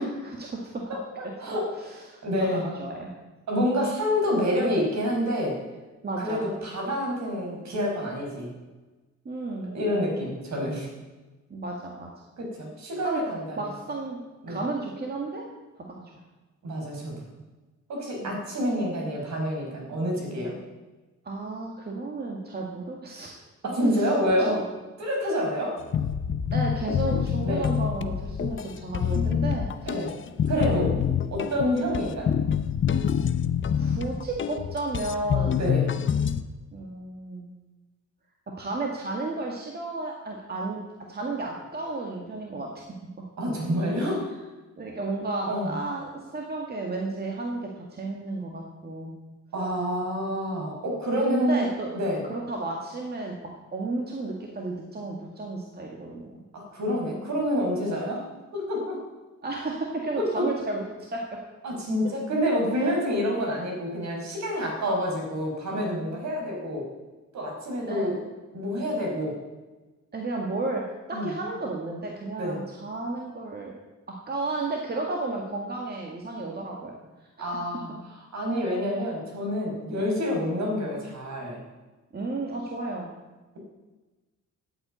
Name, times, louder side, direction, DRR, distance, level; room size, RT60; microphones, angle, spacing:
voice 1, 0.0-0.8 1.2-1.3 1.8-3.1 6.0-6.5 9.3-9.7 11.5-12.1 13.0-13.2 13.6-14.2 14.5-15.4 15.7-16.2 18.2-18.3 21.2-23.3 23.9-24.6 26.5-30.0 30.6-31.0 33.7-35.6 36.7-37.5 38.6-40.8 41.1-42.8 44.8-49.2 51.2-51.9 52.3-53.4 53.7-56.4 59.4-61.2 62.7-62.9 67.9-68.1 70.1-70.8 71.1-73.8 74.3-76.9 77.2-77.5 79.9-80.0 82.1-83.1, right 2 dB, 30° right, -1 dB, 2.0 m, -33 dB
voice 2, 0.9-1.7 2.2-2.7 3.5-5.6 6.2-8.5 9.7-10.9 12.4-13.7 14.4-14.6 16.6-17.1 17.9-20.6 23.6-24.5 25.0-25.7 27.4-27.7 29.9-30.1 30.5-30.9 31.3-32.3 35.6-35.9 43.4-44.3 45.5-45.8 49.5-51.6 51.9-52.2 56.5-58.2 58.5-59.0 60.2-60.4 61.6-66.9 67.3-68.1 68.5-69.3 71.1-71.3 72.4-72.6 77.4-77.9 78.3-81.6, equal, 65° right, 0 dB, 5.4 m, -27 dB
sound 1, 25.9-36.4, left 8 dB, 40° left, 0.7 m, -26 dB
13.0 x 8.6 x 8.9 m, 1.2 s
cardioid pair, 145°, 30 cm